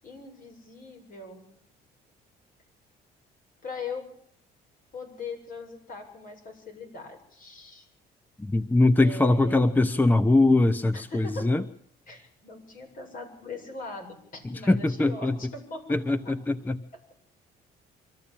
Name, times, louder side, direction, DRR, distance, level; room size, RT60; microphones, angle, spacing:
voice 1, 0.0-1.4 3.6-4.1 4.9-7.9 9.0-9.8 10.9-11.5 12.1-16.3, left 3 dB, 55° left, 5 dB, 7.8 m, -41 dB
voice 2, 8.4-11.6 14.7-15.4 15.9-16.8, left 2 dB, 10° left, 14 dB, 0.8 m, -22 dB
25.0 x 14.0 x 8.9 m, 0.69 s
cardioid pair, 110°, 17 cm